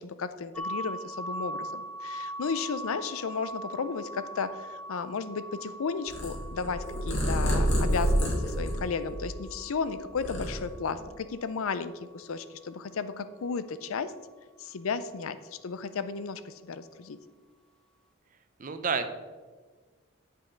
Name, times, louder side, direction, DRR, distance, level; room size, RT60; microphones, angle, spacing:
voice 1, 0.0-14.1 14.6-17.2, left 5 dB, 80° left, 12 dB, 0.5 m, -34 dB
sound 1, 0.6-12.3, right 1 dB, 5° left, 0.4 m, -42 dB
Purr, 6.1-9.6 10.0-11.1, equal, 55° left, 2.4 m, -28 dB
voice 2, 18.6-19.1, right 5 dB, 40° right, 9 dB, 0.6 m, -29 dB
8.6 x 5.5 x 5.1 m, 1.4 s
head